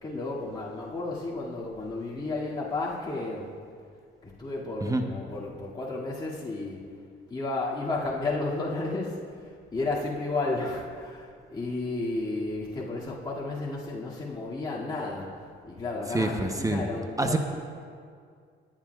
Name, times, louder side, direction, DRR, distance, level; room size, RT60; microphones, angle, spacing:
voice 1, 0.0-3.5 4.2-6.8 7.3-15.3 15.7-17.4, left 2 dB, 25° left, -7 dB, 2.2 m, -32 dB
voice 2, 16.1-16.9 17.2-17.4, right 2 dB, 15° right, 4 dB, 0.8 m, -26 dB
24.5 x 9.9 x 2.4 m, 2.2 s
cardioid pair, 90°, 20 cm